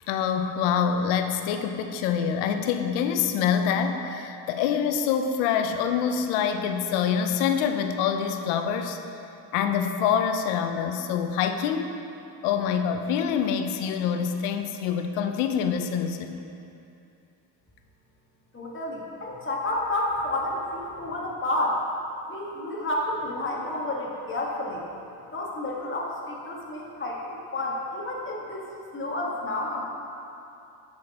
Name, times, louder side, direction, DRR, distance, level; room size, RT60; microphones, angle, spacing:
voice 1, 0.1-9.0 9.5-11.9 12.4-16.4, left 7 dB, 90° left, 7 dB, 0.7 m, -26 dB
voice 2, 18.5-21.8 22.3-24.8 25.3-28.6 28.9-29.8, left 1 dB, 25° left, -3 dB, 1.7 m, -30 dB
8.6 x 6.0 x 4.1 m, 2.7 s
supercardioid pair, 85°, 48 cm